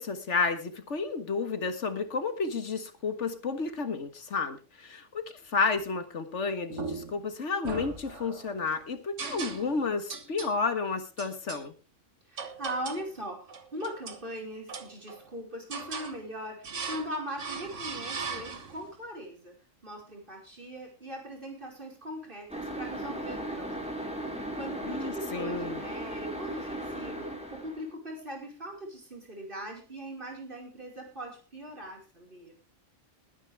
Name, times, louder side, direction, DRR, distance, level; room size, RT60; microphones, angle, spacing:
voice 1, 0.0-11.7 24.9-25.8, left 4 dB, 75° left, 9 dB, 1.8 m, -31 dB
sound 1, 6.7-7.2 7.6-8.5 9.2-9.8 10.1-10.6 11.2-11.6 12.4-13.1 13.5-14.2 14.7-15.3 15.7-16.2 16.6-17.1 17.4-18.9, right 4 dB, 80° right, 1.9 m, -38 dB
voice 2, 12.3-19.5 19.8-23.9 24.2-32.5, equal, 45° right, 0 dB, 5.1 m, -40 dB
sound 2, 22.5-27.9, right 1 dB, 5° right, 3.3 m, -37 dB
21.0 x 9.8 x 3.4 m, 0.31 s
omnidirectional pair, 1.2 m